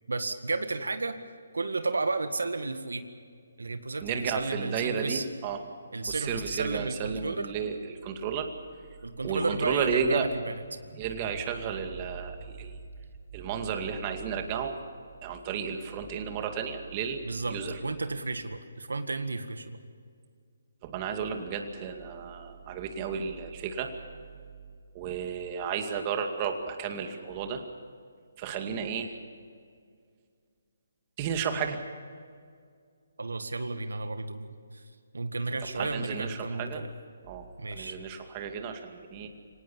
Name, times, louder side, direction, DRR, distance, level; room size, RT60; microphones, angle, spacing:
voice 1, 0.1-1.2 1.5-3.0 3.6-5.2 5.9-7.5 9.0-10.6 17.2-19.8 33.2-34.8 35.1-36.9 37.6-38.0, right 3 dB, 90° right, 9 dB, 1.8 m, -33 dB
voice 2, 4.0-5.6 6.1-8.5 9.2-10.3 10.9-12.8 13.3-14.8 15.2-17.2 17.5-17.8 20.8-23.9 24.9-27.6 28.4-29.1 31.2-31.8 35.7-36.8 37.3-39.3, right 6 dB, 30° right, 5 dB, 2.3 m, -32 dB
25.0 x 18.5 x 7.2 m, 2.1 s
hypercardioid pair, 155°, 0 cm